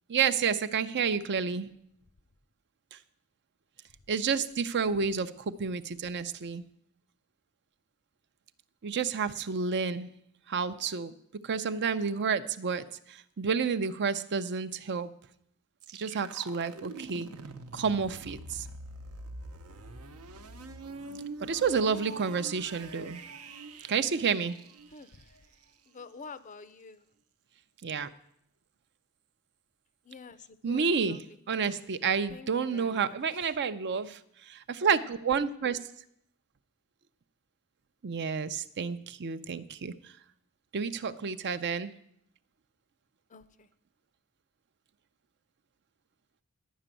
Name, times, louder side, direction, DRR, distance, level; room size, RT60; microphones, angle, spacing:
voice 1, 0.1-1.7 2.9-3.0 4.1-6.6 8.8-10.1 10.5-11.1 11.4-15.1 15.9-17.3 17.7-18.7 21.4-23.2 23.9-24.6 27.8-28.1 30.6-31.2 31.5-34.2 34.5-35.8 38.0-40.1 40.7-41.9, right 6 dB, 50° right, 12 dB, 0.6 m, -30 dB
sound 1, 15.8-25.6, right 2 dB, 75° right, 0.9 m, -45 dB
voice 2, 21.6-22.0 24.9-25.4 25.9-27.0 30.0-33.5 43.3-43.7, left 4 dB, 35° left, 14 dB, 0.5 m, -48 dB
11.0 x 6.0 x 9.0 m, 0.72 s
head